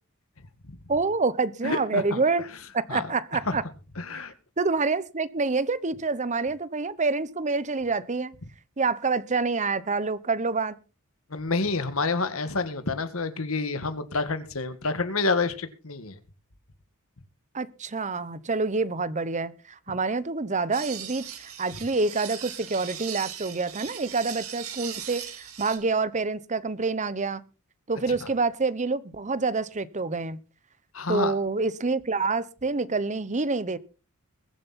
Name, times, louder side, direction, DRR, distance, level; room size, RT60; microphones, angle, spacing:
voice 1, 0.9-2.4 2.7-3.6 4.6-8.3 8.8-10.8 17.5-27.4 27.9-30.4 31.1-33.8, right 3 dB, 35° right, 0.9 m, -27 dB
voice 2, 1.6-2.2 2.9-3.1 3.5-3.6 4.0-4.3 11.3-16.2 30.9-31.3, left 3 dB, 75° left, 1.7 m, -28 dB
sound 1, 20.7-25.8, right 9 dB, 90° right, 3.3 m, -39 dB
22.0 x 7.6 x 4.2 m
head